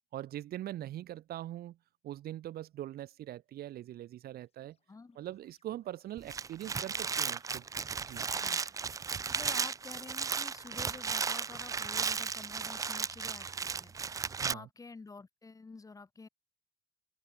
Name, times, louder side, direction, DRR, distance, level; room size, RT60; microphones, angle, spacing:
voice 1, 0.1-1.8 2.0-4.8 5.2-7.7 8.0-8.3 14.3-14.7, right 13 dB, 65° right, 1.8 m, -42 dB
sound 1, 3.7-8.7, left 6 dB, 35° left, 6.1 m, -72 dB
sound 2, 6.2-14.5, right 5 dB, 20° right, 0.3 m, -35 dB
voice 2, 8.2-8.6 9.3-13.5 13.7-16.3, left 4 dB, 20° left, 1.5 m, -50 dB
cardioid pair, 110°, 17 cm